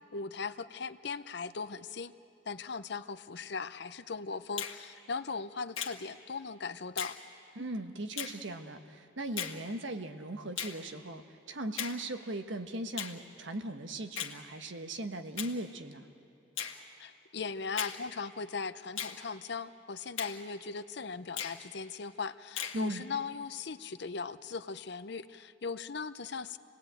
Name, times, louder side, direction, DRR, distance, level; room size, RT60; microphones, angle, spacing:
voice 1, 0.1-2.1 2.5-7.2 17.0-26.6, left 4 dB, 55° left, 13 dB, 0.6 m, -39 dB
Finger snapping, 4.6-4.8 5.8-6.0 7.0-7.2 8.2-8.4 9.4-9.6 10.6-10.8 11.8-12.0 13.0-13.2 14.2-14.4 15.4-15.6 16.6-16.8 17.8-18.0 19.0-19.2 20.2-20.4 21.4-21.6 22.6-22.8, left 9 dB, 75° left, 1.7 m, -37 dB
voice 2, 7.6-11.2 11.5-16.0 22.7-23.0, right 1 dB, 65° right, 7 dB, 1.2 m, -38 dB
27.0 x 19.5 x 9.0 m, 2.6 s
head